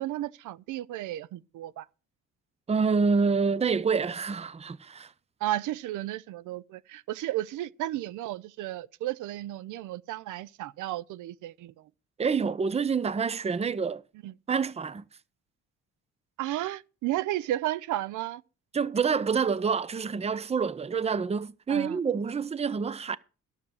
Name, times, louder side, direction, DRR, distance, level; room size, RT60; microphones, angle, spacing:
voice 1, 0.0-1.9 5.4-11.7 14.2-14.3 16.4-18.4 21.7-22.0, right 14 dB, 80° right, 0.5 m, -33 dB
voice 2, 2.7-5.1 12.2-14.0 14.5-15.0 18.7-23.2, right 5 dB, 20° right, 0.6 m, -27 dB
12.5 x 7.2 x 6.3 m
cardioid pair, 90°, 30 cm